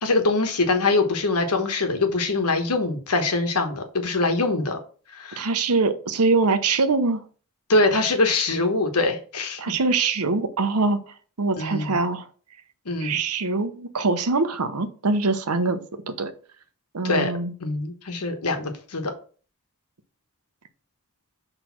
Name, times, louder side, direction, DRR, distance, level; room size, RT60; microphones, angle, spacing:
voice 1, 0.0-4.8 5.1-5.4 7.7-9.6 11.6-12.0 12.8-13.2 17.0-17.3 17.6-19.1, left 3 dB, 90° left, 1.2 m, -23 dB
voice 2, 5.4-7.2 9.6-11.0 11.4-12.3 13.0-15.8 16.1-16.3 16.9-17.5, right 3 dB, 85° right, 0.8 m, -23 dB
6.1 x 3.3 x 5.9 m
head